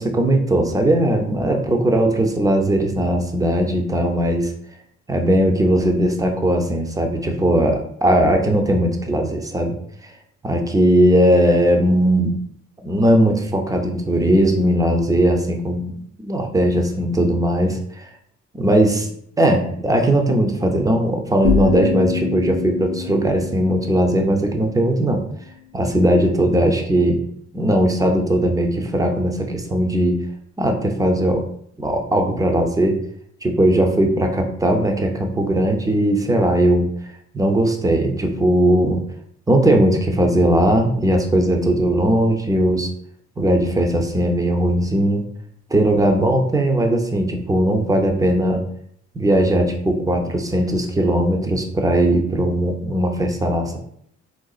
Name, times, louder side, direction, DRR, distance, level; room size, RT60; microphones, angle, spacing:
voice 1, 0.0-4.5 5.1-9.8 10.4-12.4 12.8-18.0 18.5-19.1 19.4-25.2 25.7-27.2 27.5-30.2 30.6-31.4 31.8-33.0 33.4-36.9 37.3-39.0 39.5-42.9 43.4-45.3 45.7-48.6 49.2-53.8, right 1 dB, 10° right, 3 dB, 0.5 m, -18 dB
sound 1, 21.4-25.3, left 8 dB, 85° left, 0.6 m, -26 dB
3.8 x 2.3 x 2.3 m, 0.68 s
cardioid pair, 90°, 30 cm